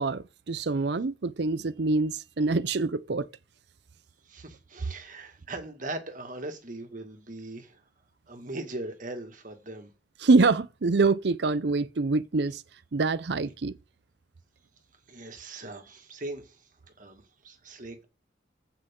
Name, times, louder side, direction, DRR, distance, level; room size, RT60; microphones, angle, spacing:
voice 1, 0.0-3.3 10.2-12.6 12.9-13.7, right 3 dB, 60° right, 0.6 m, -25 dB
voice 2, 4.2-7.8 8.3-9.9 15.1-16.7 17.0-18.0, right 2 dB, 45° right, 2.1 m, -40 dB
15.5 x 5.9 x 3.8 m
head